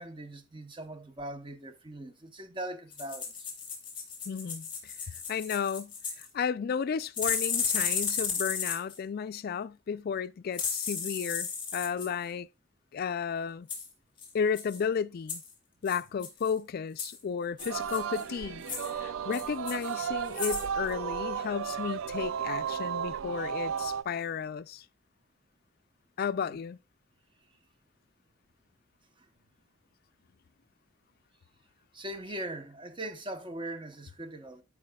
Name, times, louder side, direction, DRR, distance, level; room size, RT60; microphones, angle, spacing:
voice 1, 0.0-3.5 26.5-26.6 29.2-29.3 31.9-34.6, right 1 dB, 25° right, 0.9 m, -40 dB
sound 1, 2.9-6.3 7.2-9.0 10.5-12.1 13.7-13.9 14.2-14.3 14.6-14.8 15.3-15.5 15.9-16.5 17.0-17.2 17.6-18.2 18.6-18.9 19.3-20.0 20.3-20.7 20.9-21.0, left 5 dB, 25° left, 2.2 m, -34 dB
voice 2, 4.3-5.9 6.2-12.5 12.9-13.7 14.3-15.4 15.8-18.6 18.9-24.8 26.2-26.8, left 6 dB, 50° left, 0.3 m, -33 dB
Singing, 17.6-24.0, right 7 dB, 80° right, 0.4 m, -34 dB
12.5 x 4.8 x 2.3 m
head